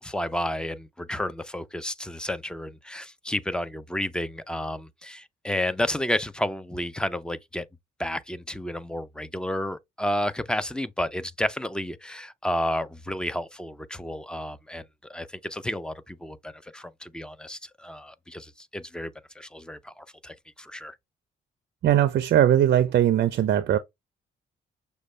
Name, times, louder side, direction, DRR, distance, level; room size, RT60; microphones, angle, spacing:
voice 1, 0.0-7.6 8.0-14.8 15.1-21.0, left 1 dB, 5° left, 0.4 m, -31 dB
voice 2, 21.8-23.8, right 11 dB, 55° right, 0.4 m, -20 dB
6.2 x 2.2 x 3.2 m
cardioid pair, 90°, 20 cm